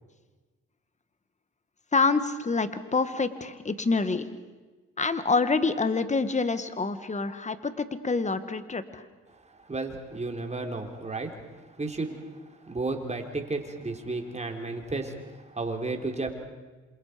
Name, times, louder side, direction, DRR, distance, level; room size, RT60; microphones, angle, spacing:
voice 1, 1.9-4.3 5.0-9.0, left 4 dB, 25° left, 11 dB, 1.7 m, -27 dB
voice 2, 9.7-11.3 11.8-12.2 12.6-16.3, right 3 dB, 20° right, 4 dB, 3.8 m, -33 dB
27.5 x 27.5 x 5.2 m, 1.3 s
cardioid pair, 90°, 30 cm